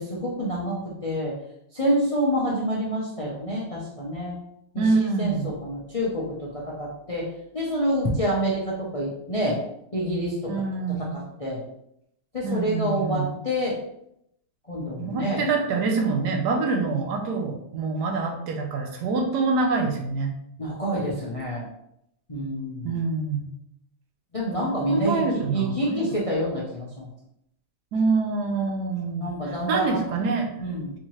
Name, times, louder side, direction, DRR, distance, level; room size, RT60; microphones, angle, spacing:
voice 1, 0.0-1.3 1.7-4.4 4.7-7.3 7.5-9.6 9.9-10.5 10.9-11.6 12.3-13.8 14.7-15.5 20.6-21.7 22.3-23.0 24.3-25.2 25.5-27.1 29.2-30.0 30.6-30.9, equal, 40° left, -5 dB, 0.5 m, -27 dB
voice 2, 4.8-5.5 10.5-11.1 12.4-13.3 15.0-20.3 22.8-23.5 24.6-26.1 27.9-30.5, right 4 dB, 80° right, 3 dB, 1.2 m, -26 dB
4.5 x 2.9 x 3.0 m, 0.78 s
omnidirectional pair, 1.8 m